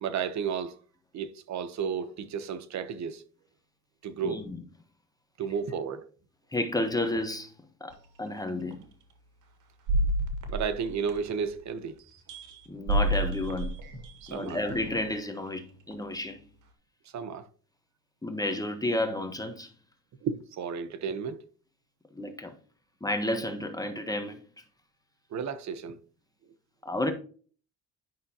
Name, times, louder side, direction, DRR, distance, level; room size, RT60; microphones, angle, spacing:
voice 1, 0.0-0.8 1.1-3.2 4.0-4.4 5.4-6.1 10.5-12.0 14.2-14.6 17.1-17.5 20.2-21.4 25.3-26.0, right 6 dB, 65° right, 1.0 m, -33 dB
voice 2, 4.2-4.6 6.5-7.5 7.8-8.8 12.7-13.7 14.3-16.4 18.2-19.7 22.1-22.5 23.0-24.4 26.8-27.1, left 1 dB, 10° left, 1.2 m, -31 dB
sound 1, 7.9-8.0 8.7-8.8 9.9-11.6 12.0-15.1 15.9-16.0, right 1 dB, 80° right, 1.8 m, -30 dB
10.5 x 5.7 x 2.9 m
cardioid pair, 90°, 30 cm